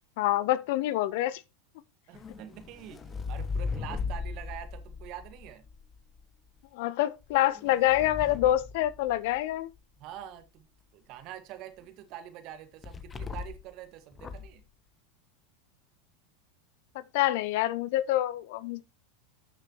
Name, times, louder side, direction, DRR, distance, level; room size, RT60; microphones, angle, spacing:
voice 1, 0.2-1.4 6.7-9.7 16.9-18.8, left 14 dB, 60° left, 0.6 m, -26 dB
sound 1, 2.1-6.2 7.2-9.5 12.8-13.7 14.1-14.6, left 4 dB, 20° left, 1.0 m, -38 dB
voice 2, 2.1-5.6 10.0-10.7 10.9-14.6, right 11 dB, 50° right, 1.8 m, -45 dB
13.0 x 6.3 x 3.1 m
figure-of-eight pair, 85°, 0 cm